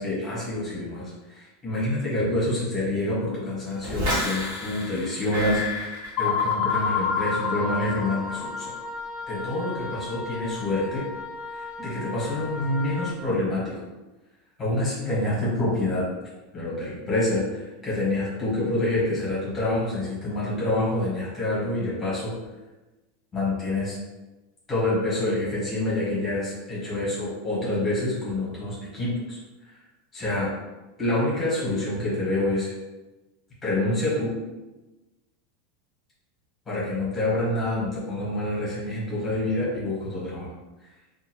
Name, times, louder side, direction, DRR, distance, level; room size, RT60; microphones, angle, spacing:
voice 1, 0.0-8.7 9.3-11.0 11.5-13.7 14.6-16.1 16.5-22.3 23.3-24.0 24.7-29.4 30.1-30.5 31.0-32.7 33.6-34.3 36.7-40.5, left 1 dB, 15° left, -7 dB, 1.1 m, -27 dB
sound 1, 3.8-6.9 7.2-7.6, left 1 dB, 55° right, 1.1 m, -30 dB
sound 2, 6.2-8.8, left 6 dB, 40° left, 0.4 m, -27 dB
Wind instrument woodwind instrument, 6.7-13.2, left 3 dB, 25° right, 0.6 m, -35 dB
2.6 x 2.3 x 2.8 m, 1.1 s
supercardioid pair, 170°, 0 cm